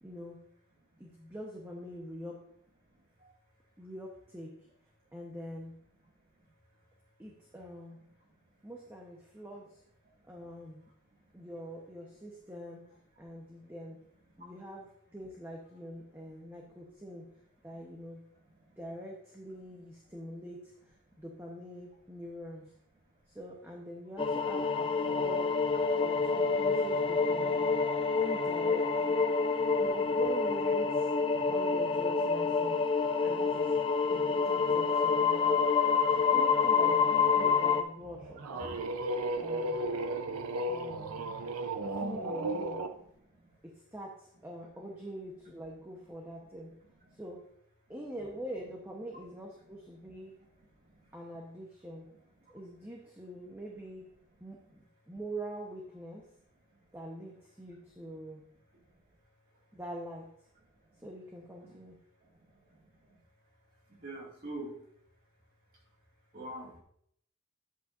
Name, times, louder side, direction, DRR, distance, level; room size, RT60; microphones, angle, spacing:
voice 1, 0.0-0.4 1.0-2.4 3.8-4.5 5.1-5.7 7.2-8.0 8.6-9.8 10.3-10.8 11.3-12.8 13.2-14.0 14.4-17.3 17.6-18.2 18.8-22.7 23.3-25.5 26.0-27.7 28.1-29.2 29.8-31.1 31.4-32.8 33.2-33.7 34.1-38.7 39.4-39.8 40.7-41.3 41.9-42.8 43.7-46.7 47.1-47.4 47.9-50.4 51.1-52.1 52.5-54.1 54.4-56.2 56.9-58.4 59.7-60.3 61.0-62.0, equal, 10° right, -1 dB, 0.9 m, -44 dB
sound 1, 24.2-37.8, left 5 dB, 25° left, 0.6 m, -27 dB
sound 2, 38.0-42.9, right 1 dB, 90° right, 0.6 m, -35 dB
voice 2, 64.0-64.7 66.3-66.7, right 1 dB, 40° right, -2 dB, 2.1 m, -42 dB
10.5 x 8.1 x 2.5 m, 0.69 s
head